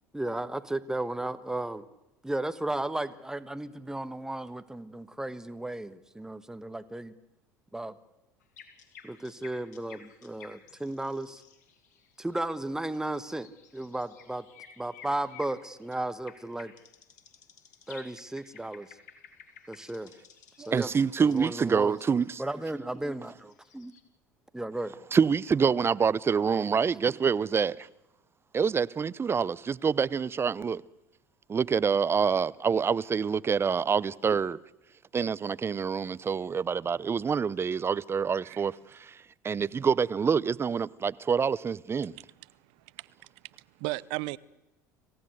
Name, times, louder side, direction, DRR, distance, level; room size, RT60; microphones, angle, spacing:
voice 1, 0.1-1.8 2.2-7.1 7.7-8.0 9.0-11.4 12.2-14.4 14.8-16.7 17.9-19.0 19.7-20.1 20.6-20.9 21.2-22.0 22.4-23.9 24.5-24.9 27.0-27.2, right 1 dB, 5° right, 1.4 m, -34 dB
sound 1, 8.4-24.0, left 7 dB, 80° left, 2.5 m, -54 dB
voice 2, 20.6-22.4 25.1-27.9 28.5-30.8 31.5-34.6 35.1-39.2 39.4-42.1, right 6 dB, 25° right, 0.7 m, -26 dB
voice 3, 42.1-44.4, right 22 dB, 65° right, 0.7 m, -38 dB
26.5 x 15.5 x 8.0 m
hypercardioid pair, 80°, 9 cm